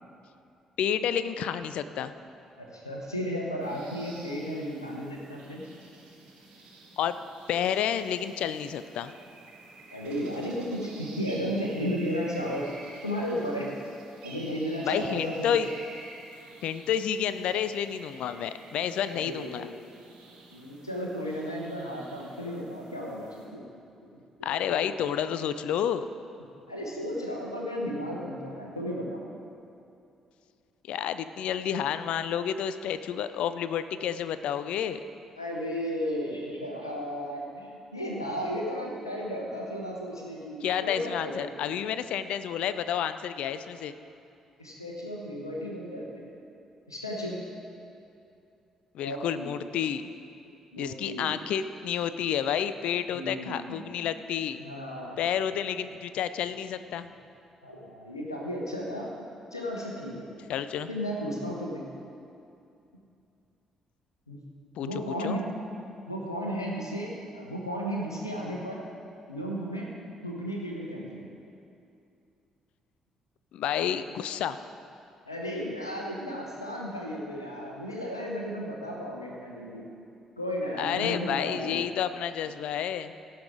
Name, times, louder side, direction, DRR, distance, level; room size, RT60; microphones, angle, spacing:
voice 1, 0.8-2.1 7.0-7.1 7.5-9.1 14.8-15.7 16.6-19.7 24.4-26.0 30.9-35.0 40.6-43.9 48.9-50.0 50.8-54.6 55.2-57.1 60.5-60.9 64.8-65.4 73.5-74.6 80.8-83.1, left 9 dB, 60° left, 12 dB, 0.4 m, -30 dB
voice 2, 2.6-5.6 9.9-12.6 13.0-13.7 14.2-15.6 19.1-19.8 20.5-23.7 26.7-29.2 35.4-41.5 44.6-46.3 46.9-47.4 49.0-49.5 50.7-51.3 53.1-53.8 54.6-55.2 57.6-59.1 59.5-60.3 60.9-61.9 64.3-64.4 64.8-65.4 66.1-68.8 69.3-69.9 70.2-71.3 75.3-79.9 80.4-81.8, equal, 90° left, -2 dB, 1.1 m, -34 dB
sound 1, 3.6-23.5, right 2 dB, 60° right, 1.8 m, -50 dB
17.0 x 5.8 x 4.9 m, 2.6 s
figure-of-eight pair, 40°, 2 cm